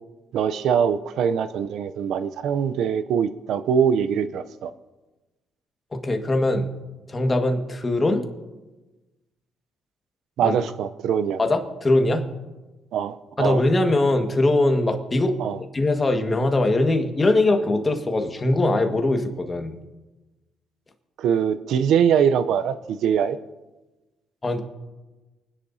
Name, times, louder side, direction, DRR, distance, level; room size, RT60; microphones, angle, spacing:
voice 1, 0.3-4.7 10.4-11.4 12.9-13.6 15.4-15.6 21.2-23.4, right 8 dB, 75° right, 13 dB, 0.5 m, -22 dB
voice 2, 5.9-6.7 7.1-8.2 10.4-10.6 11.4-12.2 13.4-15.3 15.7-19.7 24.4-24.6, left 2 dB, 25° left, 4 dB, 1.6 m, -21 dB
29.0 x 10.0 x 2.7 m, 1.2 s
cardioid pair, 95°, 0 cm